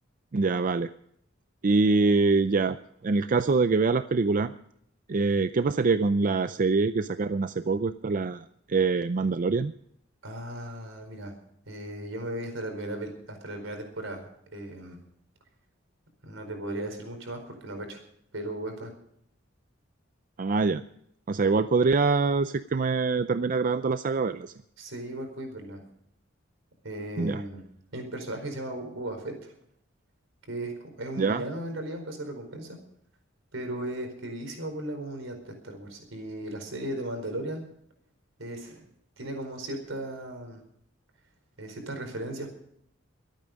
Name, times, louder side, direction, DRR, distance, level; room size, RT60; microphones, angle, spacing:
voice 1, 0.3-0.9 1.6-2.8 3.0-4.5 5.1-9.7 20.4-20.8 21.3-24.5 27.2-27.4 31.2-31.4, right 4 dB, 45° right, 11 dB, 0.5 m, -24 dB
voice 2, 10.2-11.3 11.6-15.0 16.2-18.0 18.3-18.9 24.8-25.8 26.8-27.6 27.9-29.5 30.5-32.8 33.5-37.6 38.4-38.8 39.2-40.6 41.6-42.5, right 1 dB, 75° right, 5 dB, 4.6 m, -36 dB
23.5 x 9.2 x 5.2 m, 0.71 s
head